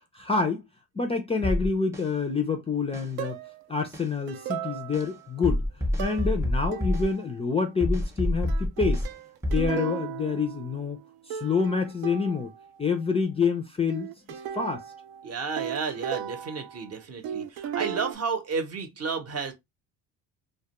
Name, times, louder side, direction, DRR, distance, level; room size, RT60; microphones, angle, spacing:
voice 1, 0.1-0.7 0.9-3.4 3.7-5.6 6.0-9.0 9.5-11.0 11.3-12.5 12.8-14.8, left 5 dB, 15° left, 0.4 m, -27 dB
sound 1, 1.4-2.1 2.9-3.1 3.9-4.1 4.9-5.1 5.4-7.1 7.8-9.1 9.4-9.7, left 1 dB, 10° right, 0.7 m, -27 dB
sound 2, 3.2-3.7 4.3-5.3 6.0-6.4 6.7-7.3 8.5-11.0 11.3-12.7 13.9-17.0 17.2-18.1, right 9 dB, 75° right, 0.5 m, -36 dB
voice 2, 15.2-19.5, right 5 dB, 45° right, 0.8 m, -32 dB
2.3 x 2.1 x 2.9 m
cardioid pair, 95°, 36 cm